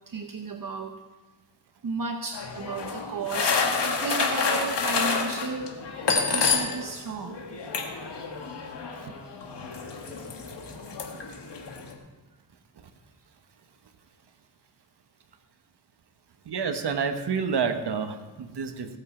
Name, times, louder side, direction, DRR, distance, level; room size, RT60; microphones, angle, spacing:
voice 1, 0.1-0.9 1.8-5.7 6.3-7.4 9.1-9.2, right 4 dB, 55° right, 5 dB, 0.9 m, -34 dB
sound 1, 2.3-7.0 7.2-11.9, left 4 dB, 85° left, 1.7 m, -29 dB
voice 2, 16.5-19.0, right 6 dB, 75° right, 7 dB, 1.2 m, -29 dB
18.5 x 8.2 x 4.4 m, 1.2 s
wide cardioid pair, 80°, 40 cm